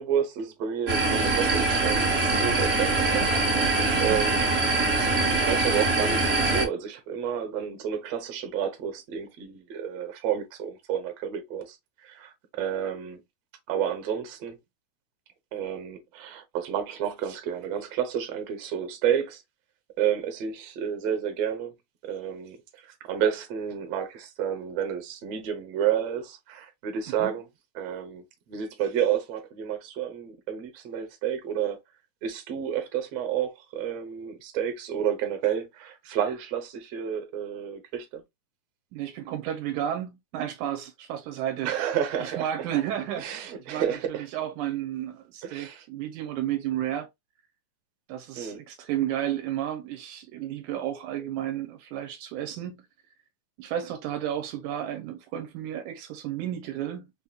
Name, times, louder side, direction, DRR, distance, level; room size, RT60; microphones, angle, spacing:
voice 1, 0.0-4.4 5.3-13.2 13.7-14.6 15.5-19.4 20.0-21.7 22.0-27.5 27.8-31.8 32.2-38.2 41.6-42.5 43.2-44.3 45.4-45.8 48.4-48.6, right 9 dB, 65° right, 1.9 m, -30 dB
sound 1, 0.9-6.6, right 3 dB, 50° right, 0.7 m, -23 dB
voice 2, 38.9-41.7 42.2-47.1 48.1-52.9 53.6-57.1, right 11 dB, 85° right, 2.1 m, -32 dB
5.8 x 2.8 x 2.2 m
omnidirectional pair, 3.5 m